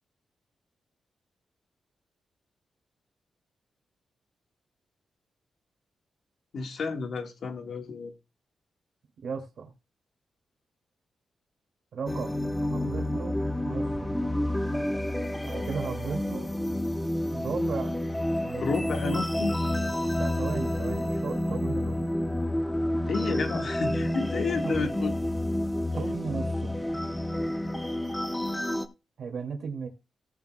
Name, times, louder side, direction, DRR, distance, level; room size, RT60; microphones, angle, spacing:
voice 1, 6.5-8.1 18.6-19.6 23.1-25.1, left 4 dB, 60° left, 1.5 m, -31 dB
voice 2, 9.2-9.7 11.9-12.4 12.7-13.4 13.6-14.1 15.4-16.5 17.3-17.9 18.4-18.6 20.2-22.2 24.6-24.9 25.9-26.7 29.2-29.9, right 5 dB, 65° right, 2.3 m, -35 dB
sound 1, 12.1-28.9, left 1 dB, 5° left, 0.8 m, -29 dB
17.5 x 7.2 x 2.2 m
wide cardioid pair, 135°, 0 cm